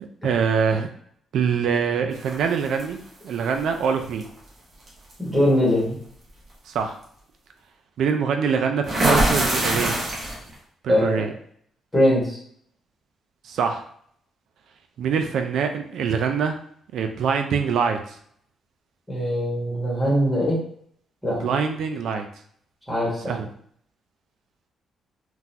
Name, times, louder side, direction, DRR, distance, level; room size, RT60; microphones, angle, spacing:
voice 1, 0.2-0.9 1.3-4.2 6.7-7.0 8.0-10.1 10.8-11.3 13.4-13.8 15.0-16.6 16.9-18.2 21.4-22.3 23.3-23.5, right 6 dB, 65° right, 5 dB, 0.4 m, -24 dB
sound 1, 2.2-2.8 4.2-4.4 4.9-5.1 8.8-10.5, right 1 dB, 30° right, 0.9 m, -22 dB
voice 2, 5.2-6.0 10.9-11.3 11.9-12.4 19.1-20.6 21.2-21.5 22.9-23.4, equal, 5° left, -7 dB, 1.4 m, -21 dB
3.9 x 2.4 x 2.7 m, 0.63 s
cardioid pair, 175°, 0 cm